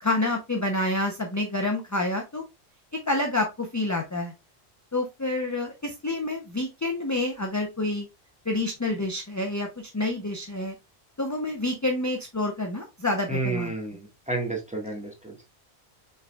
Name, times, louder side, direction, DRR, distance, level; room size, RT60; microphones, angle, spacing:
voice 1, 0.0-2.4 3.1-4.3 4.9-8.1 8.5-10.7 11.2-13.7, left 2 dB, 25° left, 2 dB, 0.4 m, -28 dB
voice 2, 13.3-15.4, right 2 dB, 5° right, 0 dB, 1.3 m, -31 dB
5.4 x 3.8 x 2.2 m, 0.24 s
omnidirectional pair, 1.1 m